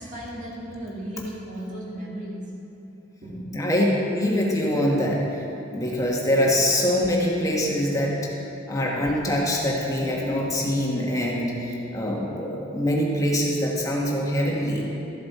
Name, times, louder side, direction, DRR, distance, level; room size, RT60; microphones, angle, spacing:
voice 1, 0.0-2.5 3.2-3.5, right 1 dB, 40° right, -4 dB, 2.0 m, -35 dB
voice 2, 3.5-3.8 4.1-5.4 5.7-8.2 8.7-14.9, equal, 20° left, -3 dB, 1.3 m, -24 dB
13.5 x 7.4 x 4.2 m, 2.9 s
head